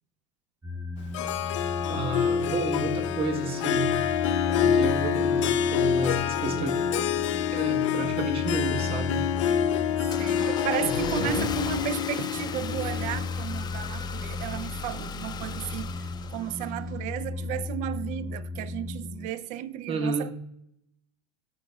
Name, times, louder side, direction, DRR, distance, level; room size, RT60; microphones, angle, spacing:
sound 1, 0.6-19.3, left 3 dB, 20° right, 1.3 m, -36 dB
Harp, 1.1-13.3, left 8 dB, 90° left, 0.4 m, -27 dB
voice 1, 1.9-3.9 4.6-6.7 7.5-9.2 10.8-11.6 19.9-20.3, right 3 dB, 40° right, 1.1 m, -31 dB
Car / Engine starting, 9.7-17.0, left 6 dB, 25° left, 0.5 m, -37 dB
voice 2, 10.2-20.3, right 12 dB, 55° right, 0.4 m, -34 dB
11.5 x 4.2 x 2.2 m
supercardioid pair, 100°, 15 cm